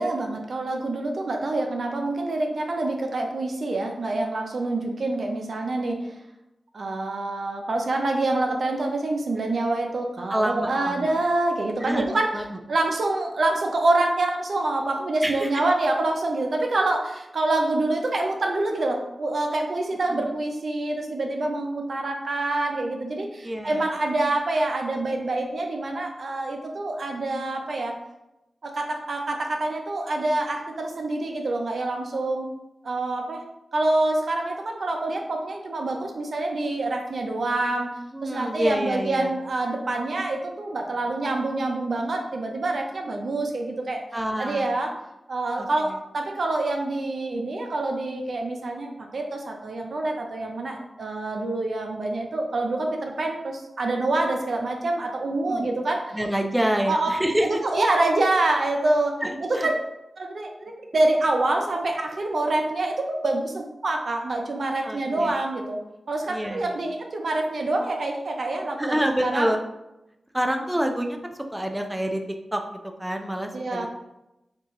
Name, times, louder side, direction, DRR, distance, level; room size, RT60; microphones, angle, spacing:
voice 1, 0.0-6.2 6.7-12.3 12.7-28.0 28.6-32.5 32.8-33.4 33.7-37.9 38.2-44.0 44.4-44.9 45.3-56.0 56.9-57.1 57.4-59.2 59.6-59.8 60.2-65.8 66.1-69.5 73.5-73.9, right 2 dB, 70° right, 2 dB, 0.5 m, -26 dB
voice 2, 10.3-11.1 11.8-12.1 12.3-12.6 15.2-15.6 20.1-20.3 23.4-23.9 38.1-39.3 44.1-44.7 45.6-45.9 55.5-55.7 56.1-57.6 59.2-59.7 64.8-65.4 66.3-66.8 68.8-69.6 70.3-72.6 73.0-73.9, equal, 15° right, 4 dB, 0.5 m, -27 dB
4.5 x 2.5 x 2.9 m, 0.91 s
cardioid pair, 45°, 0 cm